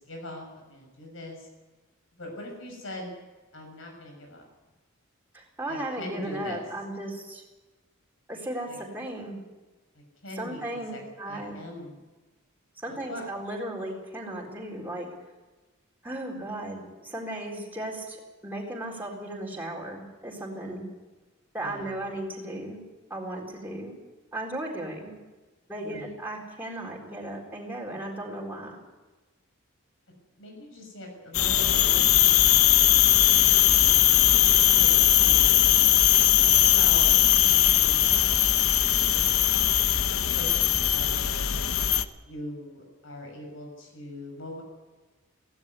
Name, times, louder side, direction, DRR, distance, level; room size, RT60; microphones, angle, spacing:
voice 1, 0.0-1.5 2.1-3.1 3.5-4.5 5.7-6.6 8.7-8.8 9.9-11.0 11.3-12.0 12.9-13.2 21.6-22.0 25.8-26.1 30.4-33.1 34.7-34.9 35.2-35.9 36.4-37.1 37.5-41.8 42.2-44.6, left 1 dB, 70° left, 1 dB, 6.4 m, -42 dB
voice 2, 5.3-7.4 8.3-9.4 10.4-11.6 12.8-15.1 16.0-18.2 18.4-20.9 21.5-22.8 23.1-23.9 24.3-25.1 25.7-28.8, right 1 dB, 10° right, -3 dB, 4.1 m, -36 dB
sound 1, 31.3-42.1, left 12 dB, 90° left, 0.9 m, -20 dB
16.5 x 16.5 x 9.9 m, 1.2 s
head